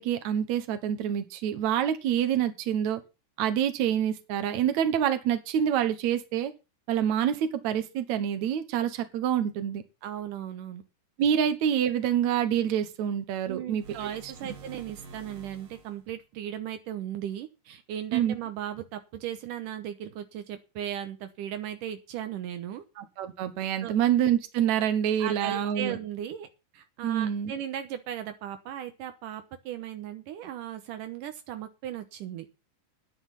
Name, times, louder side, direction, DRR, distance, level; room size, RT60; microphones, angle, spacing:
voice 1, 0.0-3.0 3.4-6.5 6.9-9.8 11.2-14.1 18.1-18.3 23.0-26.0 27.0-27.5, right 9 dB, 65° right, 9 dB, 2.5 m, -27 dB
voice 2, 10.0-10.8 13.5-22.8 23.8-23.9 25.2-26.5 26.7-32.5, right 10 dB, 80° right, 8 dB, 2.6 m, -37 dB
sound 1, 13.7-16.1, right 4 dB, 45° right, 2.6 m, -48 dB
11.5 x 10.0 x 5.6 m, 0.29 s
omnidirectional pair, 3.8 m